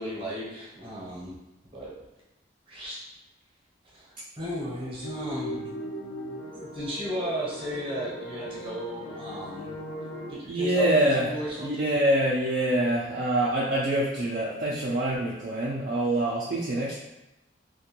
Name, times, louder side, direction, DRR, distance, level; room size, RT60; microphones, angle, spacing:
voice 1, 0.0-1.4 1.7-1.9 2.7-3.0 3.8-5.7 6.5-9.8 10.3-12.0, equal, 30° right, -5 dB, 0.8 m, -35 dB
sound 1, 5.0-10.3, left 1 dB, 80° left, 0.4 m, -38 dB
voice 2, 10.5-11.3 11.6-17.0, right 1 dB, 50° right, -6 dB, 0.4 m, -25 dB
2.5 x 2.2 x 2.9 m, 0.96 s
head